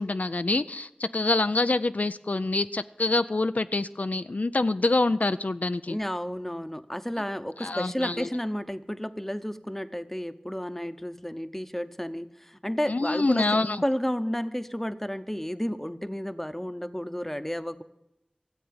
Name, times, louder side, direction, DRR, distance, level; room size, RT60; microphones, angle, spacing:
voice 1, 0.0-6.0 7.6-8.3 12.9-13.8, left 2 dB, 75° left, 11 dB, 0.4 m, -26 dB
voice 2, 5.9-17.8, equal, 10° left, 11 dB, 0.8 m, -32 dB
14.0 x 8.0 x 8.7 m, 0.87 s
wide cardioid pair, 40°, 3 cm